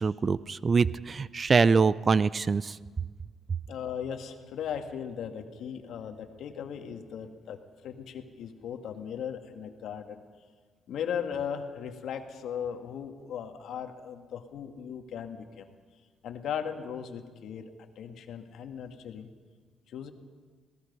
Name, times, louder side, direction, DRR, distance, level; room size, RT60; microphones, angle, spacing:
voice 1, 0.0-2.8, right 4 dB, 35° right, 18 dB, 0.5 m, -24 dB
voice 2, 3.7-10.2 10.9-15.7 16.2-19.3 19.9-20.1, left 8 dB, 75° left, 6 dB, 1.7 m, -37 dB
26.0 x 18.5 x 5.5 m, 1.5 s
cardioid pair, 90°, 0 cm